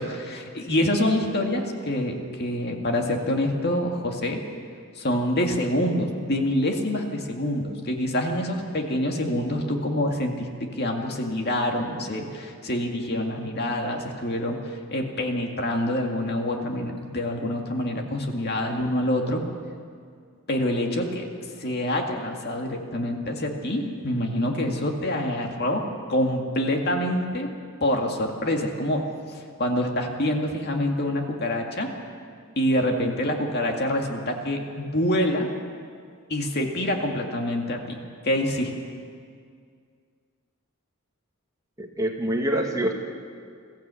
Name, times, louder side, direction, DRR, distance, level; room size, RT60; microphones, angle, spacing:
voice 1, 0.0-4.4 5.0-19.4 20.5-21.3 21.6-27.5 27.8-29.0 29.3-31.9 32.6-35.5 36.3-38.0 38.2-38.7, left 1 dB, 45° left, 2 dB, 2.1 m, -26 dB
voice 2, 41.8-42.9, right 1 dB, 15° right, 2 dB, 1.5 m, -25 dB
22.0 x 14.5 x 8.3 m, 2.2 s
head